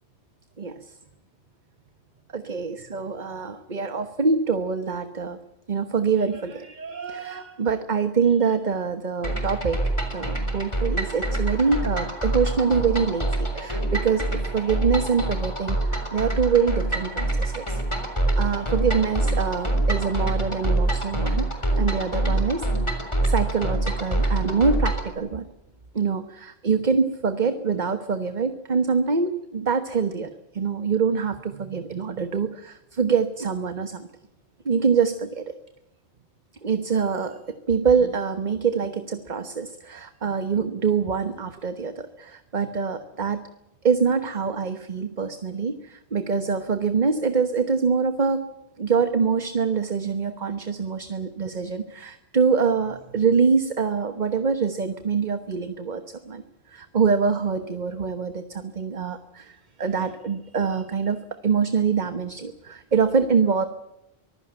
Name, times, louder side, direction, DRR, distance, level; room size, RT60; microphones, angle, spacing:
voice 1, 0.6-0.9 2.3-5.4 5.7-9.8 10.1-14.3 14.5-17.8 18.4-21.5 21.8-22.7 23.2-25.4 25.9-34.1 34.6-35.4 36.6-37.4 37.7-43.4 43.8-48.4 48.8-56.4 56.7-63.7, right 5 dB, 45° right, 10 dB, 1.3 m, -25 dB
sound 1, 9.2-25.1, right 2 dB, 25° left, 3.8 m, -25 dB
24.0 x 15.5 x 8.9 m, 0.91 s
omnidirectional pair, 1.1 m